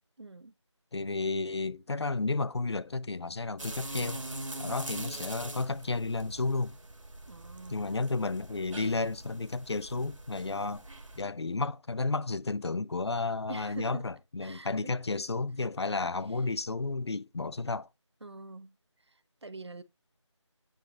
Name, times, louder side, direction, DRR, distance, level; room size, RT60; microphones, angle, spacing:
voice 1, 0.2-0.5 7.3-7.8 13.5-14.0 14.4-14.7 18.2-18.7 19.1-19.8, right 2 dB, 60° right, 1.1 m, -45 dB
voice 2, 0.9-4.3 4.6-6.8 7.7-10.8 11.2-17.9, left 3 dB, 60° left, 0.6 m, -32 dB
sound 1, 3.6-11.2, right 2 dB, 80° right, 2.1 m, -43 dB
9.2 x 8.4 x 2.5 m
figure-of-eight pair, 175°, 16 cm